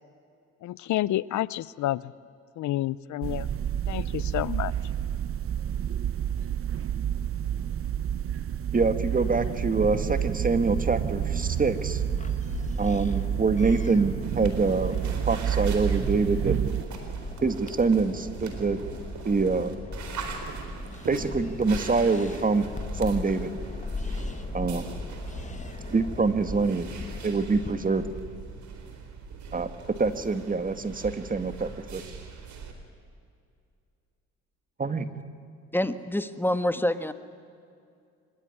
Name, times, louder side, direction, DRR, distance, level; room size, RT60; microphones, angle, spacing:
voice 1, 0.6-2.1 2.6-3.5 3.9-4.7, left 14 dB, 75° left, 20 dB, 0.6 m, -29 dB
sound 1, 3.2-16.8, right 9 dB, 45° right, 0.9 m, -29 dB
voice 2, 8.7-12.0 12.8-15.0 15.3-16.6 17.4-18.8 19.3-19.7 21.1-22.7 23.0-23.5 24.5-24.8 25.9-26.9 27.2-28.0 29.5-29.7 30.0-32.0 34.8-35.1, right 4 dB, 25° right, 10 dB, 1.8 m, -25 dB
sound 2, 11.0-28.2, left 3 dB, 25° left, 1.7 m, -39 dB
sound 3, 14.2-32.7, right 5 dB, 70° right, 4.4 m, -41 dB
voice 3, 35.7-37.1, left 1 dB, 5° left, 11 dB, 1.4 m, -26 dB
25.0 x 21.5 x 9.8 m, 2.4 s
cardioid pair, 90°, 30 cm